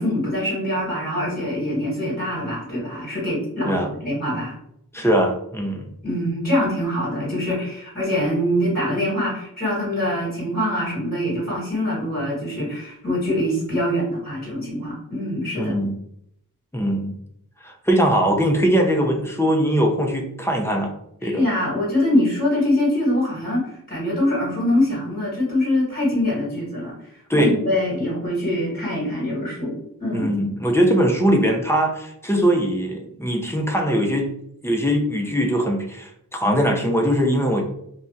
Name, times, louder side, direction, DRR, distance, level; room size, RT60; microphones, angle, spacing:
voice 1, 0.0-4.6 6.0-15.7 21.2-30.3, left 1 dB, 25° left, -7 dB, 1.3 m, -24 dB
voice 2, 4.9-5.9 15.6-15.9 16.7-17.1 17.6-20.9 21.2-21.4 27.3-27.5 30.1-34.3 34.6-37.6, equal, 5° left, 1 dB, 0.4 m, -21 dB
2.6 x 2.2 x 2.3 m, 0.74 s
wide cardioid pair, 40°, 36 cm